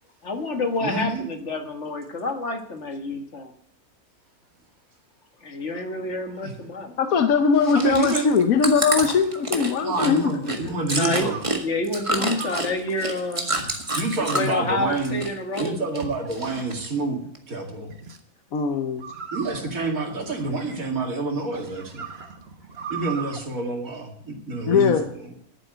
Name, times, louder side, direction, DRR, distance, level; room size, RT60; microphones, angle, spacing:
voice 1, 0.2-3.5 5.4-7.0 10.9-11.3 11.6-13.5 14.3-16.1, left 2 dB, 55° left, 6 dB, 1.8 m, -28 dB
voice 2, 0.8-1.2 6.4-6.5 7.7-8.3 9.8-11.4 14.0-15.2 15.6-17.9 19.3-22.1 22.9-25.3, right 3 dB, 70° right, 0 dB, 2.9 m, -28 dB
voice 3, 7.0-10.7 12.2-12.3 18.5-19.0 24.7-25.1, left 6 dB, 70° left, 7 dB, 1.3 m, -21 dB
Chewing mastication, 7.6-14.6 14.9-15.7 15.9-16.9 17.3-17.4, right 1 dB, 20° right, 1.7 m, -28 dB
sound 1, 8.5-10.3 11.3-11.6 12.3-12.8 13.6-14.1 14.7-15.3 16.0-16.8 17.9-18.2 19.0-21.1 21.5-23.4, right 6 dB, 45° right, 1.4 m, -40 dB
11.5 x 9.2 x 7.9 m, 0.65 s
omnidirectional pair, 1.5 m